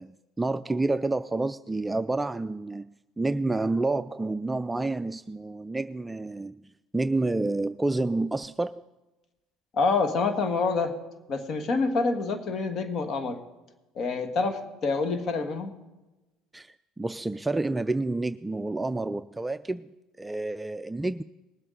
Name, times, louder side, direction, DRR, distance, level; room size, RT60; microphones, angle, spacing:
voice 1, 0.0-2.9 3.2-8.8 16.5-21.2, right 2 dB, 10° right, 11 dB, 0.3 m, -29 dB
voice 2, 9.7-10.9 11.3-13.4 13.9-15.7, left 4 dB, 50° left, 7 dB, 1.6 m, -27 dB
20.0 x 8.0 x 3.9 m, 1.1 s
supercardioid pair, 90°, 0 cm